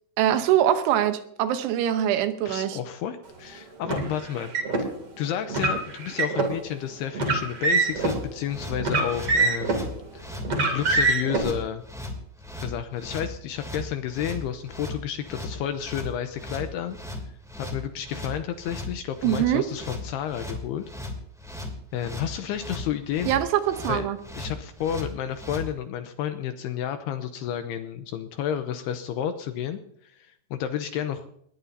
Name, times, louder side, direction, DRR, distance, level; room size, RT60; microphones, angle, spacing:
voice 1, 0.2-2.8 19.2-19.7 23.3-24.2, right 11 dB, 85° right, 8 dB, 3.4 m, -23 dB
voice 2, 2.5-4.5 4.8-4.9 5.2-9.8 10.1-10.3 10.7-11.8 12.6-17.0 17.6-20.8 21.9-23.3 23.9-24.1 24.4-31.3, left 9 dB, 80° left, 8 dB, 2.5 m, -31 dB
Car, 3.8-4.8 5.5-6.5 7.1-8.1 8.8-9.9 10.4-11.4, right 3 dB, 35° right, 3.0 m, -24 dB
sound 1, 7.8-25.7, left 2 dB, ahead, 1.5 m, -37 dB
20.0 x 19.5 x 2.8 m, 0.72 s
omnidirectional pair, 5.3 m